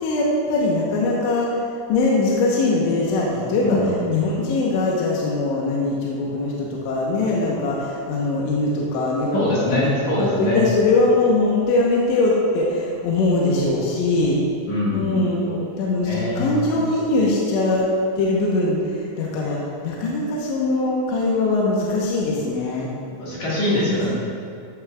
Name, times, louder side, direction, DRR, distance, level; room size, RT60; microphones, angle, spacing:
voice 1, 0.0-9.9 10.2-14.4 14.9-17.9 18.2-22.9 23.9-24.0, left 2 dB, 80° left, -4 dB, 3.1 m, -21 dB
voice 2, 3.6-4.0 9.3-10.6 14.7-15.6 16.0-16.7 23.1-24.1, left 1 dB, 55° left, -8 dB, 2.3 m, -23 dB
14.5 x 6.9 x 2.3 m, 2.3 s
omnidirectional pair, 5.4 m